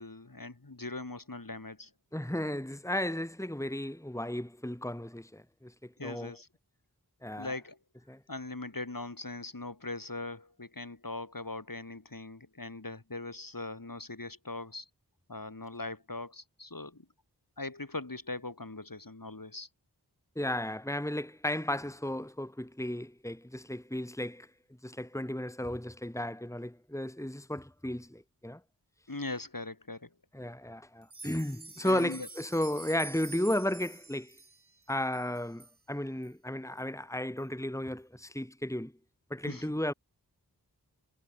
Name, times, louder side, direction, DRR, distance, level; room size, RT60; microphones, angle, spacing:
voice 1, 0.0-1.9 6.0-6.5 7.4-7.8 8.3-14.9 15.3-17.1 17.6-19.7 29.1-30.1 31.8-32.3 39.4-39.8, left 2 dB, 55° left, 5.8 m, -40 dB
voice 2, 2.1-6.4 7.2-7.5 8.1-8.2 20.4-24.5 24.8-28.6 30.3-34.4 34.9-38.9 39.3-39.9, left 1 dB, 5° left, 2.4 m, -34 dB
sound 1, 31.0-35.8 36.2-36.3 36.8-36.9 37.4-37.5, right 3 dB, 75° right, 7.2 m, -48 dB
wide cardioid pair, 40°, 39 cm